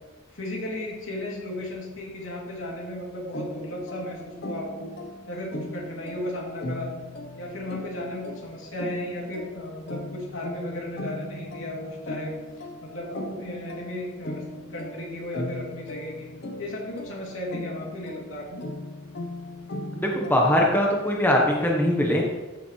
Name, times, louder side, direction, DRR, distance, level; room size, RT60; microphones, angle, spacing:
voice 1, 0.3-5.0 5.3-6.9 7.4-12.3 12.8-14.4 14.7-16.3 16.6-18.7, left 1 dB, 75° left, -3 dB, 2.9 m, -35 dB
sound 1, 3.3-20.8, left 1 dB, 55° left, 1.0 m, -38 dB
voice 2, 20.0-22.2, left 1 dB, 10° left, -2 dB, 1.2 m, -21 dB
14.5 x 7.0 x 3.3 m, 1.2 s
head